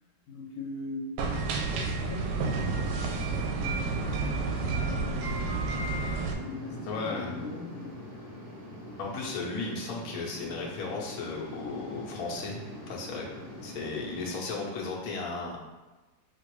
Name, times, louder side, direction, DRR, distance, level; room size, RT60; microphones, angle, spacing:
voice 1, 0.3-1.1 2.0-6.0 6.4-7.9, left 2 dB, 85° left, 1 dB, 1.5 m, -40 dB
sound 1, 1.2-6.3, right 4 dB, 75° right, 1.1 m, -30 dB
sound 2, 2.5-14.3, left 1 dB, 15° right, 0.7 m, -43 dB
voice 2, 6.9-7.4 9.0-12.6 12.9-13.3 13.6-15.7, left 3 dB, 55° left, -3 dB, 1.2 m, -35 dB
6.6 x 2.5 x 3.0 m, 1.1 s
omnidirectional pair, 2.1 m